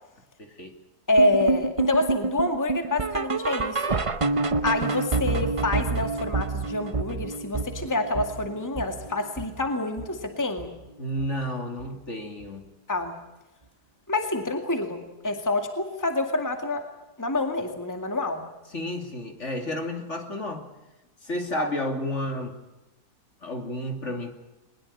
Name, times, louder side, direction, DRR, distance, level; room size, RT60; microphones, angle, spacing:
voice 1, 0.4-0.7 11.0-12.6 18.7-20.7 21.2-22.5 23.4-24.3, left 1 dB, 45° left, 4 dB, 3.0 m, -31 dB
voice 2, 1.1-4.0 4.6-10.7 12.9-13.1 14.1-16.8 17.2-18.4 21.5-21.7, left 2 dB, 10° left, 5 dB, 2.1 m, -27 dB
sound 1, 1.2-10.3 10.6-10.9 11.2-11.3 11.8-11.9 12.4-12.5, right 3 dB, 30° right, 0.6 m, -28 dB
21.5 x 21.0 x 8.7 m, 0.97 s
omnidirectional pair, 1.8 m